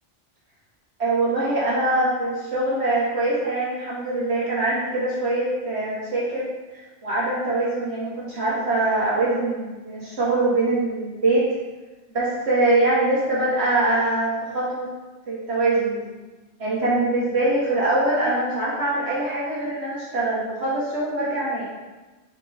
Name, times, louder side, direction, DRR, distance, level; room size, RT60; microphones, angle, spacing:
voice 1, 1.0-6.5 7.0-11.5 12.1-14.9 15.3-16.2 16.6-21.7, right 2 dB, 60° right, -7 dB, 1.8 m, -23 dB
4.6 x 4.6 x 5.1 m, 1.2 s
omnidirectional pair, 1.3 m